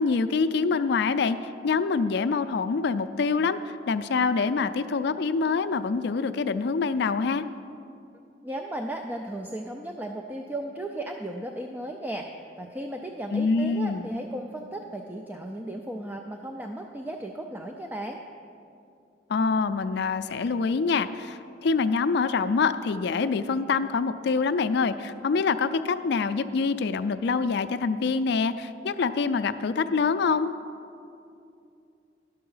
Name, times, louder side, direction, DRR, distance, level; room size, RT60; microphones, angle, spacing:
voice 1, 0.0-1.4 1.6-7.4 13.3-14.1 19.3-30.5, left 4 dB, 65° left, 12 dB, 0.4 m, -25 dB
voice 2, 8.4-12.3 12.6-18.2, right 1 dB, 10° right, 3 dB, 0.4 m, -35 dB
11.0 x 6.7 x 5.5 m, 2.6 s
head